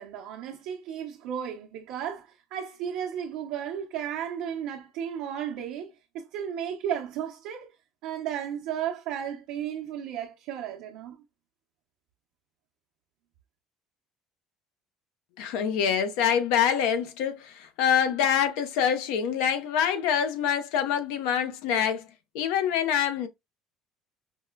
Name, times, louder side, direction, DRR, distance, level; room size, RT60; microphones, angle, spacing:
voice 1, 0.0-7.7 8.0-11.2, right 9 dB, 75° right, 0.6 m, -34 dB
voice 2, 15.4-22.0 22.3-23.3, left 8 dB, 85° left, 0.6 m, -25 dB
5.2 x 2.1 x 2.2 m
cardioid pair, 155°, 0 cm